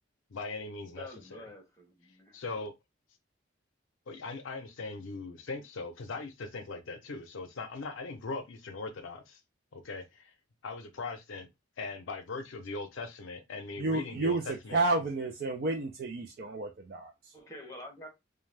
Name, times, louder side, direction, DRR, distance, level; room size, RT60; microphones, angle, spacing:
voice 1, 0.3-1.5 2.3-2.7 4.1-9.4 9.7-10.3 10.6-11.5 11.8-14.8, left 3 dB, 85° left, 0.5 m, -40 dB
voice 2, 0.9-2.4 17.3-18.1, left 1 dB, 15° left, 0.8 m, -47 dB
voice 3, 13.8-17.3, right 2 dB, 50° right, 0.4 m, -31 dB
2.5 x 2.2 x 3.2 m
head